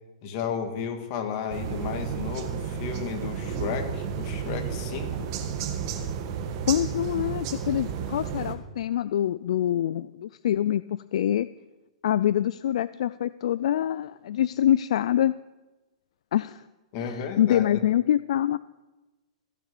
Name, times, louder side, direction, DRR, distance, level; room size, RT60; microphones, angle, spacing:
voice 1, 0.2-5.3 16.9-17.8, left 7 dB, 45° left, 5 dB, 2.1 m, -33 dB
sound 1, 1.5-8.6, right 7 dB, 45° right, 1.5 m, -32 dB
voice 2, 6.7-11.5 12.0-15.3 16.3-16.6 17.0-18.6, left 11 dB, 70° left, 16 dB, 0.3 m, -25 dB
15.0 x 6.7 x 7.0 m, 1.1 s
hypercardioid pair, 130°, 4 cm